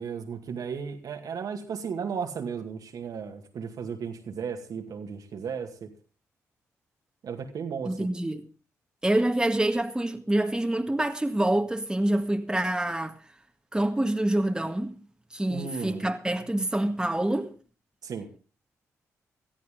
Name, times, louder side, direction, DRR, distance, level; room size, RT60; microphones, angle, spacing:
voice 1, 0.0-5.9 7.2-8.1 15.5-16.1 18.0-18.3, right 6 dB, 65° right, 2.2 m, -35 dB
voice 2, 7.9-8.5 9.0-13.2 13.7-15.0 15.3-17.5, right 1 dB, 10° right, 1.9 m, -26 dB
18.5 x 13.5 x 3.8 m
supercardioid pair, 50°, 7 cm